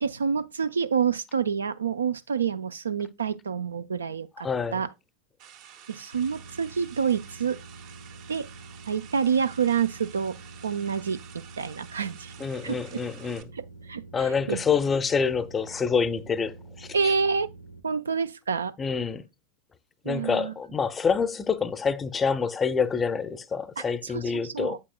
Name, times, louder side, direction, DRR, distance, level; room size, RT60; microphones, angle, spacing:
voice 1, 0.0-4.9 5.9-7.6 8.3-8.5 8.9-10.4 10.6-11.2 11.6-12.3 12.6-13.0 13.9-14.0 14.5-14.6 16.9-17.5 17.8-18.7 20.0-20.5 24.1-24.2 24.5-24.8, right 6 dB, 70° right, 0.5 m, -27 dB
voice 2, 4.4-4.8 12.4-13.4 14.1-17.2 18.8-19.2 20.0-24.8, left 5 dB, 20° left, 0.6 m, -27 dB
sound 1, 5.4-13.4, right 9 dB, 45° right, 0.8 m, -50 dB
sound 2, 6.1-17.8, right 3 dB, 80° left, 0.8 m, -47 dB
8.5 x 7.5 x 2.2 m
figure-of-eight pair, 90°, 0 cm